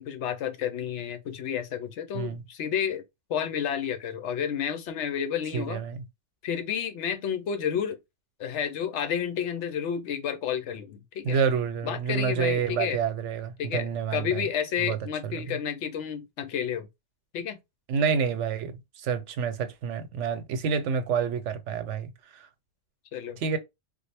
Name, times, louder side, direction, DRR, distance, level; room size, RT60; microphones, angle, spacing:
voice 1, 0.0-3.0 3.3-5.8 6.4-8.0 8.4-11.4 11.8-13.0 13.6-16.9 17.3-17.6 23.1-23.6, left 8 dB, 75° left, 0.9 m, -31 dB
voice 2, 5.5-6.0 11.2-14.5 14.8-15.0 15.2-15.6 17.9-22.5 23.4-23.6, right 6 dB, 85° right, 1.0 m, -28 dB
3.6 x 2.1 x 3.3 m
omnidirectional pair, 1.2 m